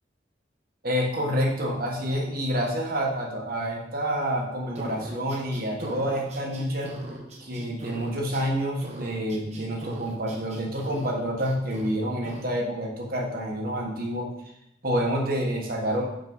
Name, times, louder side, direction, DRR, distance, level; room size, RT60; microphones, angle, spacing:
voice 1, 0.8-6.9 7.4-14.3 14.8-16.0, equal, 55° right, -1 dB, 1.6 m, -28 dB
sound 1, 4.7-8.5 8.8-11.1 11.4-11.9 12.2-12.5, right 1 dB, 40° right, 1.2 m, -39 dB
5.5 x 4.7 x 5.6 m, 0.83 s
head